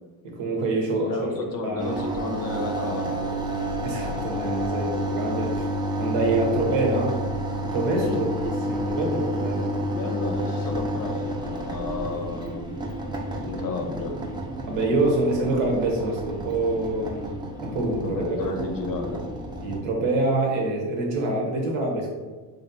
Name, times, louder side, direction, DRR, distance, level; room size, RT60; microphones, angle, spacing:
voice 1, 0.2-1.3 1.6-2.3 3.8-5.7 6.0-7.1 7.7-9.7 14.7-18.2 19.6-22.1, right 2 dB, 70° right, 0 dB, 1.0 m, -26 dB
voice 2, 1.0-3.3 8.0-8.2 9.9-12.8 13.4-14.1 18.0-19.2, left 3 dB, 45° left, 3 dB, 0.6 m, -32 dB
sound 1, 1.8-19.8, right 1 dB, 10° right, 0.5 m, -30 dB
3.2 x 2.6 x 2.6 m, 1.4 s
supercardioid pair, 75°, 48 cm